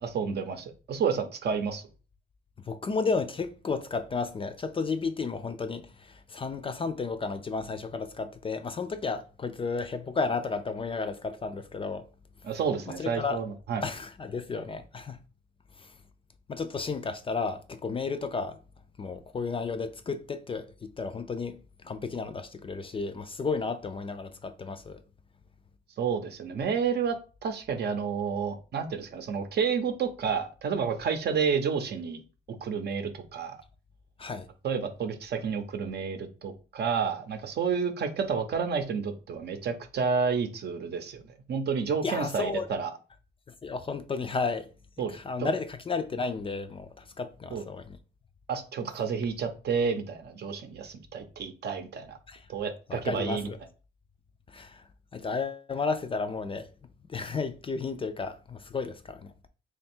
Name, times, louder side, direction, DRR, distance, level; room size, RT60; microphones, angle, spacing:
voice 1, 0.0-1.8 12.4-13.8 26.0-27.2 27.4-32.2 32.5-33.6 34.6-42.9 45.0-45.5 47.5-47.6 48.5-52.2 52.5-53.5, right 6 dB, 55° right, 0.7 m, -30 dB
voice 2, 2.7-12.1 12.9-13.4 13.8-15.2 15.8-15.9 16.5-18.6 19.0-25.0 34.2-34.5 42.0-42.7 43.6-44.7 45.1-48.0 52.3-52.5 52.9-53.6 54.5-54.8 55.1-56.7 57.1-59.3, left 4 dB, 25° left, 0.3 m, -33 dB
3.1 x 2.3 x 4.3 m
cardioid pair, 90°, 20 cm